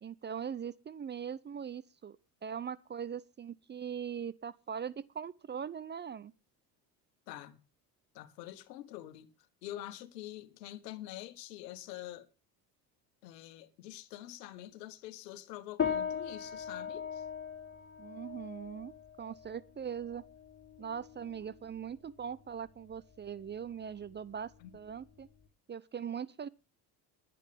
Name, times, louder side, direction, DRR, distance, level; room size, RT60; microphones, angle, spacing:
voice 1, 0.0-2.2 2.4-6.3 18.0-18.9 19.2-20.2 20.8-25.3 25.7-26.5, right 7 dB, 25° right, 0.5 m, -41 dB
voice 2, 7.3-7.6 8.1-9.3 9.6-12.3 13.2-17.2 24.6-24.7, left 14 dB, 80° left, 1.6 m, -46 dB
sound 1, 15.8-25.4, left 7 dB, 30° left, 3.5 m, -41 dB
21.0 x 8.6 x 3.5 m
hypercardioid pair, 70°, 49 cm